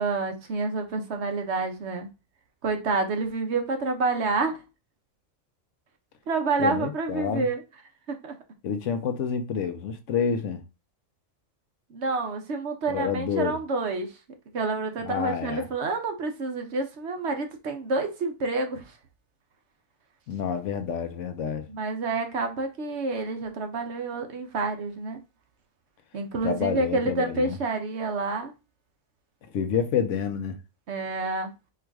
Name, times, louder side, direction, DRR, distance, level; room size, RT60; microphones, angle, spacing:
voice 1, 0.0-2.1 2.6-4.6 6.3-7.6 8.1-8.3 11.9-14.1 14.5-18.9 21.7-25.2 26.1-28.5 30.9-31.5, right 3 dB, 60° right, 1.0 m, -28 dB
voice 2, 6.6-7.5 8.6-10.6 12.9-13.6 15.0-15.7 20.3-21.7 26.4-27.6 29.5-30.6, left 7 dB, 70° left, 0.9 m, -28 dB
4.6 x 2.5 x 4.6 m
omnidirectional pair, 1.4 m